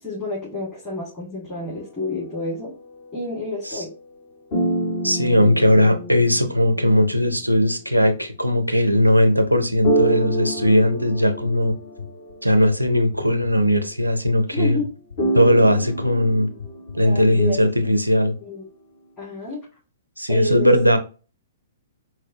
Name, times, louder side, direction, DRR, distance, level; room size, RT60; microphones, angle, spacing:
voice 1, 0.0-2.7 3.1-3.9 14.5-14.9 17.0-17.9 18.4-18.7 19.2-19.6 20.3-20.7, left 2 dB, 15° left, 1.7 m, -29 dB
sound 1, 1.6-4.2 4.5-8.1 9.8-13.5 15.2-17.4, right 1 dB, 40° left, 1.3 m, -28 dB
voice 2, 5.0-11.8 12.4-14.8 15.3-16.5 16.9-18.4 20.2-21.0, left 1 dB, 90° right, 0.6 m, -18 dB
sound 2, 10.6-17.5, left 6 dB, 70° left, 0.5 m, -38 dB
4.0 x 2.2 x 2.7 m
figure-of-eight pair, 115°, 0 cm